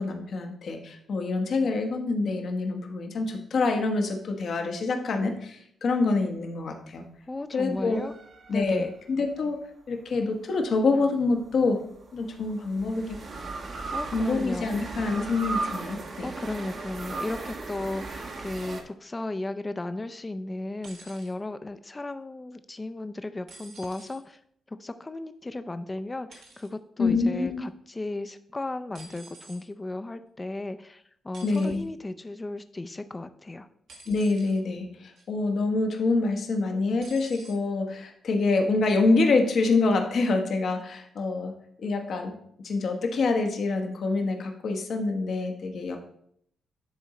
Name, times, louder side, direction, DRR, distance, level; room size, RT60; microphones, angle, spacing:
voice 1, 0.0-7.0 7.5-8.0 8.5-9.6 9.9-11.8 12.1-13.2 14.1-16.3 27.0-27.7 31.4-31.8 34.1-42.4 42.6-46.0, left 3 dB, 65° left, 4 dB, 1.2 m, -26 dB
voice 2, 7.3-8.1 8.5-8.9 13.9-14.7 16.2-24.4 24.7-33.7, left 2 dB, 25° left, 10 dB, 0.5 m, -35 dB
sound 1, 7.9-9.4 11.3-18.8, right 3 dB, 60° right, 1.2 m, -37 dB
sound 2, 20.8-21.3 23.5-24.2 26.3-26.7 28.9-29.6 31.3-31.8 33.9-34.6 35.2-35.5 37.0-37.6 38.6-38.7, right 2 dB, 75° right, 1.6 m, -49 dB
10.5 x 3.7 x 4.2 m, 0.69 s
supercardioid pair, 55°, 0 cm